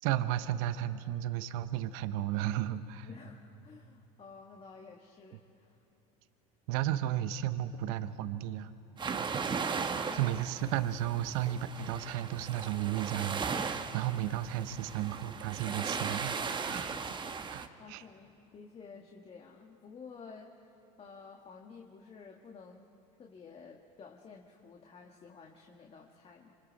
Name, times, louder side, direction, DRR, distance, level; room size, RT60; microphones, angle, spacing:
voice 1, 0.0-3.1 6.7-8.7 10.1-17.1 17.5-18.0, right 12 dB, 70° right, 12 dB, 0.9 m, -34 dB
voice 2, 3.0-5.8 10.0-10.3 14.2-14.4 17.8-22.9 23.2-26.5, left 5 dB, 35° left, 0 dB, 1.7 m, -52 dB
sound 1, 9.0-17.7, right 5 dB, 25° right, 1.1 m, -37 dB
26.5 x 25.0 x 4.1 m, 2.7 s
supercardioid pair, 100°, 18 cm